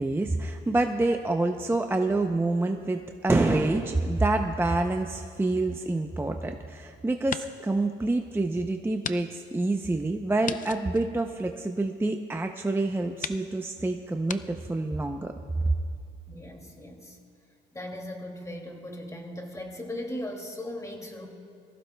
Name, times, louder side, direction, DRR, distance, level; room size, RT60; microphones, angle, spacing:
voice 1, 0.0-15.3, right 2 dB, 10° right, 5 dB, 0.6 m, -27 dB
sound 1, 5.8-6.8 7.1-7.8 8.2-8.3 9.0-9.2 9.5-9.6 10.4-12.0 12.7-12.8 13.2-13.4 14.3-14.4, left 7 dB, 40° left, 0.5 m, -37 dB
voice 2, 16.3-17.2 17.7-21.3, left 1 dB, 15° left, 2 dB, 2.3 m, -38 dB
23.5 x 15.0 x 2.2 m, 2.3 s
cardioid pair, 90°, 20 cm